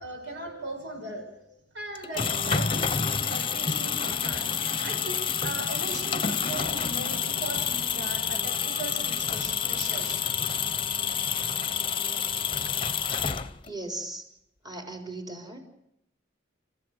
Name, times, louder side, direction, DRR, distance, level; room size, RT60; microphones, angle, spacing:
voice 1, 0.0-4.5 4.8-10.2, right 2 dB, 65° right, 3 dB, 7.6 m, -39 dB
sound 1, 1.9-13.8, left 7 dB, 30° left, 1.0 m, -28 dB
voice 2, 13.6-14.3 14.6-15.6, right 2 dB, 25° right, 4 dB, 4.3 m, -38 dB
29.5 x 15.5 x 8.1 m, 0.82 s
head